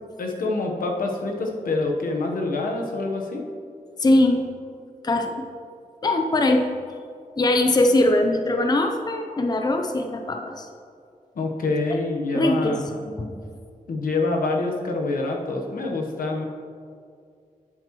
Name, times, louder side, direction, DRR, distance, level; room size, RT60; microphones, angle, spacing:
voice 1, 0.2-3.4 11.3-12.8 13.9-16.4, left 3 dB, 80° left, 1 dB, 1.1 m, -26 dB
voice 2, 4.0-4.4 5.0-5.3 6.0-6.7 7.4-10.7 11.9-12.0 12.3-12.8 13.0-13.3, left 1 dB, 30° left, 4 dB, 0.6 m, -21 dB
12.0 x 7.5 x 3.1 m, 2.3 s
wide cardioid pair, 90°, 14 cm